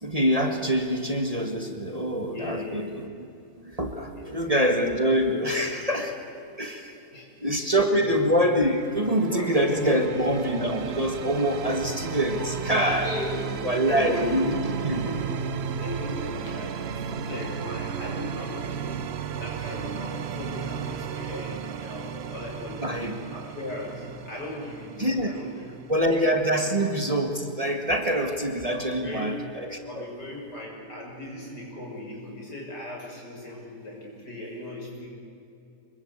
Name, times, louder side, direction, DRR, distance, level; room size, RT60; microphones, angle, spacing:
voice 1, 0.0-3.3 3.6-6.2 6.6-6.9 7.4-13.1 13.6-14.5 14.8-15.0 22.8-23.2 25.0-25.4 25.9-30.1, equal, 20° right, 4 dB, 1.8 m, -25 dB
voice 2, 2.3-2.9 4.1-4.4 7.1-7.3 7.6-7.7 8.0-8.2 9.3-9.5 9.9-10.0 12.4-12.7 13.0-19.1 19.4-22.8 23.3-25.7 26.5-26.8 28.7-29.3 29.8-35.1, left 1 dB, 85° left, -2 dB, 7.0 m, -37 dB
sound 1, 8.6-26.4, right 7 dB, 50° right, 0.8 m, -34 dB
26.0 x 21.5 x 8.2 m, 2.8 s
omnidirectional pair, 1.8 m